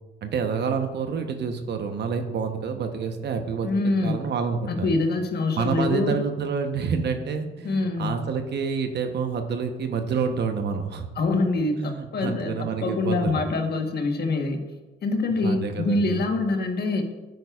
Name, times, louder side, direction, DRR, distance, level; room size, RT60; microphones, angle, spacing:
voice 1, 0.2-3.7 4.0-4.9 5.5-11.1 11.8-13.4 15.4-16.2, right 5 dB, 60° right, 6 dB, 0.9 m, -28 dB
voice 2, 3.6-4.3 4.7-6.1 7.6-8.1 11.2-12.5 12.8-14.6 15.0-17.1, left 3 dB, 55° left, 5 dB, 1.2 m, -25 dB
9.4 x 9.2 x 2.4 m, 1.1 s
cardioid pair, 90°, 20 cm